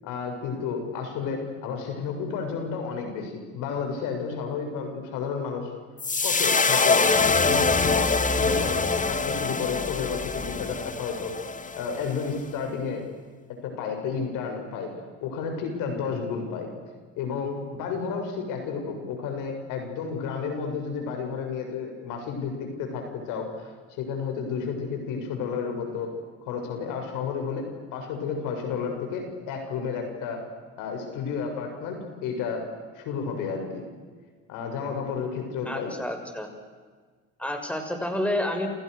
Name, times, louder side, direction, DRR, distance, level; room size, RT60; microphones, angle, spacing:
voice 1, 0.0-5.7 6.2-11.3 11.8-13.1 13.6-14.9 15.2-16.7 17.2-26.1 26.4-27.7 27.9-30.4 30.8-32.6 33.0-33.8 34.5-35.9, left 5 dB, 75° left, 4 dB, 7.0 m, -31 dB
sound 1, 6.0-12.3, left 4 dB, 25° left, 2.4 m, -24 dB
voice 2, 35.6-36.5 37.4-38.7, left 1 dB, 5° left, 4 dB, 6.7 m, -29 dB
29.0 x 28.5 x 6.7 m, 1.5 s
supercardioid pair, 80°, 32 cm